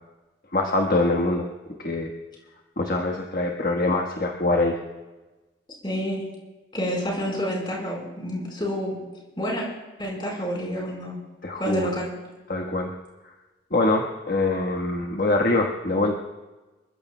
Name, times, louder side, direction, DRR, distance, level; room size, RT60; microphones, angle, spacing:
voice 1, 0.5-1.4 1.8-2.1 2.8-4.8 11.4-12.0 12.5-12.9 13.7-16.2, left 2 dB, 50° left, 1 dB, 1.4 m, -24 dB
voice 2, 5.8-6.2 6.7-9.0 9.4-9.7 10.0-11.2 11.6-12.1, equal, 25° left, -2 dB, 4.7 m, -28 dB
28.0 x 15.0 x 2.3 m, 1.2 s
head